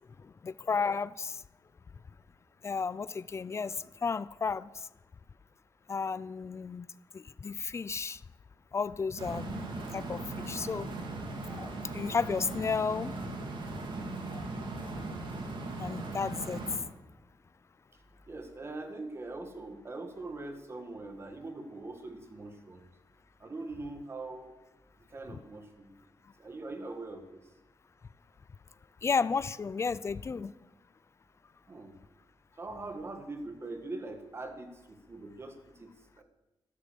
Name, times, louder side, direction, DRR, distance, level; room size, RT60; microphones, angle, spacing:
voice 1, 0.2-1.4 2.6-4.9 5.9-6.9 7.1-8.2 8.7-10.9 11.5-13.1 14.3-14.4 15.8-16.7 29.0-30.6, left 5 dB, 35° left, 17 dB, 0.5 m, -33 dB
sound 1, 9.2-16.8, right 2 dB, 65° right, 2.8 m, -38 dB
voice 2, 18.3-22.9 23.4-24.6 25.0-25.9 26.4-27.4 31.7-32.0 32.6-36.2, right 2 dB, 30° right, 6 dB, 1.7 m, -42 dB
14.0 x 12.5 x 7.0 m, 1.0 s
wide cardioid pair, 155°, 9 cm